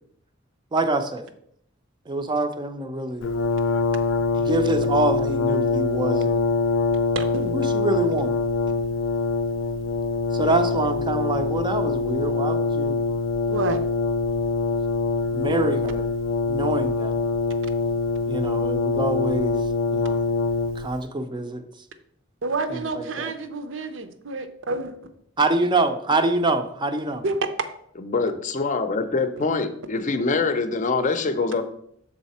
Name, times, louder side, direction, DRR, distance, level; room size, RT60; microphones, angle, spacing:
voice 1, 0.7-1.3 2.1-3.2 4.4-6.4 7.5-8.3 10.3-13.0 15.3-16.1 16.5-17.2 18.3-19.6 19.9-20.2 20.8-21.6 22.7-23.3 25.4-27.2, right 2 dB, 25° right, 8 dB, 0.5 m, -25 dB
Brass instrument, 3.2-21.0, left 4 dB, 85° left, 0.4 m, -24 dB
voice 2, 7.1-7.5 13.5-13.8 22.4-24.9 27.2-27.4, right 3 dB, 75° right, 9 dB, 0.7 m, -29 dB
voice 3, 28.0-31.6, left 3 dB, 40° left, 9 dB, 0.5 m, -24 dB
6.3 x 4.1 x 4.2 m, 0.70 s
head